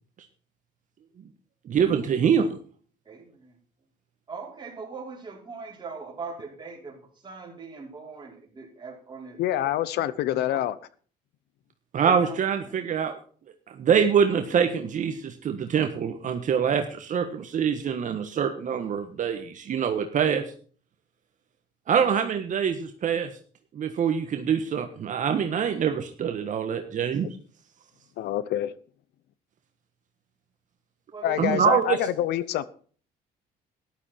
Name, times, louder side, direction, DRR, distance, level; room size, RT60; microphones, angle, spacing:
voice 1, 1.7-2.5 11.9-13.2 13.8-20.4 21.9-23.3 23.7-27.3 31.4-32.0, right 7 dB, 50° right, 6 dB, 1.4 m, -24 dB
voice 2, 3.0-3.6 4.3-10.6 12.0-12.8 31.1-31.7 32.2-32.3, right 4 dB, 25° right, -1 dB, 4.9 m, -41 dB
voice 3, 9.4-10.8 28.2-28.7 31.2-32.6, left 12 dB, 75° left, 17 dB, 0.8 m, -26 dB
13.5 x 11.5 x 4.5 m, 0.43 s
cardioid pair, 110°, 17 cm